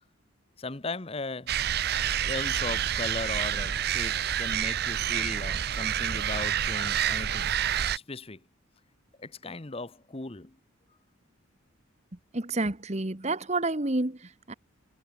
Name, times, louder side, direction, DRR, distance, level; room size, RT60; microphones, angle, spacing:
voice 1, 0.6-1.6 2.1-7.5 7.9-8.5 9.2-10.6, left 3 dB, 25° left, 0.9 m, -37 dB
sound 1, 1.5-8.0, right 10 dB, 50° right, 0.5 m, -28 dB
voice 2, 12.3-14.5, right 2 dB, 30° right, 1.2 m, -29 dB
head